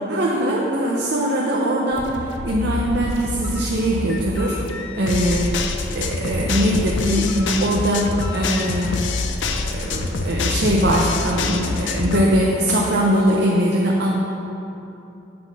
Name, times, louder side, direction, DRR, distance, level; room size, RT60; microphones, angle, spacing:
voice 1, 0.1-4.6 5.0-9.0 9.5-14.2, right 1 dB, 55° right, -2 dB, 0.6 m, -21 dB
sound 1, 1.9-12.2, left 3 dB, 60° left, 0.5 m, -26 dB
7.7 x 4.0 x 6.0 m, 2.9 s
head